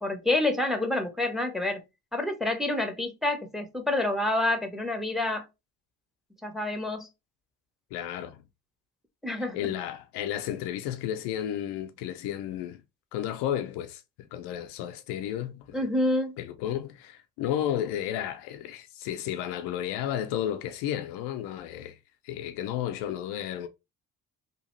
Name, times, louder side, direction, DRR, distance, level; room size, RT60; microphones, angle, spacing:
voice 1, 0.0-1.8 2.1-5.5 6.4-7.1 9.2-9.7 15.7-16.4, left 2 dB, ahead, 0.8 m, -28 dB
voice 2, 7.9-8.4 9.3-12.8 13.1-15.8 16.4-22.0 22.2-23.7, left 11 dB, 80° left, 0.5 m, -33 dB
2.7 x 2.4 x 3.0 m
supercardioid pair, 55°, 39 cm